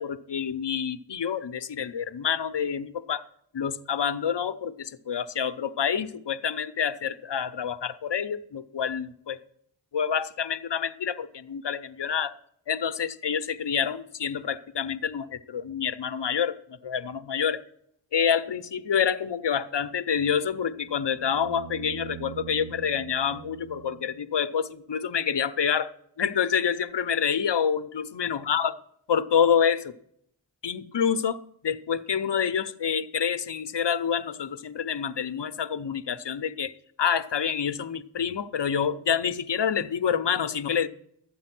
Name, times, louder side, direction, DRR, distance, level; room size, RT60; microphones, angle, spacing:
voice 1, 0.0-3.2 3.5-9.4 9.9-12.3 12.7-16.6 16.8-17.6 18.1-25.9 26.2-28.7 29.1-29.9 30.6-40.9, left 7 dB, 60° left, 12 dB, 0.8 m, -27 dB
sound 1, 20.4-24.5 26.9-27.0, right 12 dB, 90° right, 0.6 m, -44 dB
13.0 x 8.7 x 6.0 m, 0.69 s
cardioid pair, 40°, 48 cm